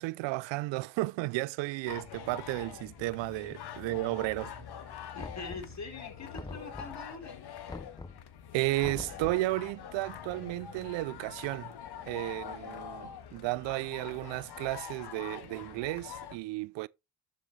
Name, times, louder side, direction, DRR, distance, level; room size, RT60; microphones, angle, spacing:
voice 1, 0.0-4.7 8.5-11.7 12.1-16.9, right 20 dB, 85° right, 0.5 m, -33 dB
sound 1, 1.9-16.4, left 8 dB, 65° left, 1.6 m, -45 dB
voice 2, 5.1-7.4, left 3 dB, 40° left, 4.5 m, -43 dB
Knock, 5.2-5.9 6.3-7.1 7.7-8.3 8.8-9.5, left 3 dB, 10° left, 0.5 m, -44 dB
12.0 x 6.4 x 3.2 m
supercardioid pair, 70°, 43 cm